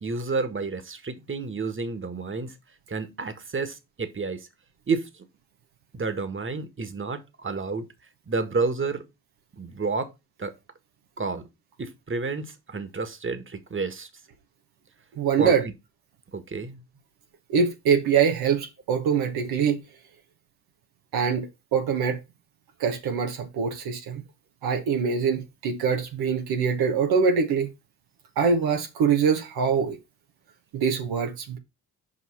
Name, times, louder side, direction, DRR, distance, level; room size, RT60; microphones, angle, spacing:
voice 1, 0.0-2.5 2.9-4.5 4.9-5.2 5.9-7.9 8.3-9.0 9.6-10.1 10.4-10.5 11.2-11.5 11.8-14.1 15.4-15.6 16.3-16.8, right 4 dB, 30° right, 1.7 m, -30 dB
voice 2, 15.2-15.6 17.5-19.8 21.1-22.2 22.8-24.2 24.6-27.7 28.4-30.0 30.7-31.6, right 6 dB, 75° right, 1.3 m, -24 dB
5.6 x 5.4 x 5.6 m
hypercardioid pair, 45°, 38 cm